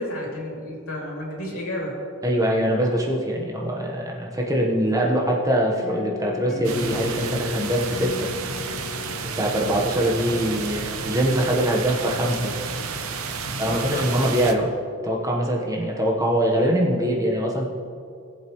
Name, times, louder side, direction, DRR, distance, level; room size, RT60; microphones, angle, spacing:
voice 1, 0.0-1.9 13.4-14.1, left 1 dB, 85° left, -3 dB, 2.9 m, -32 dB
voice 2, 2.2-8.3 9.2-12.5 13.6-14.7 15.0-17.7, equal, 15° right, -2 dB, 1.1 m, -23 dB
sound 1, 5.8-10.5, left 6 dB, 40° left, 0.5 m, -36 dB
sound 2, 6.6-14.5, right 4 dB, 90° right, 0.8 m, -31 dB
19.0 x 7.6 x 3.1 m, 2.4 s
head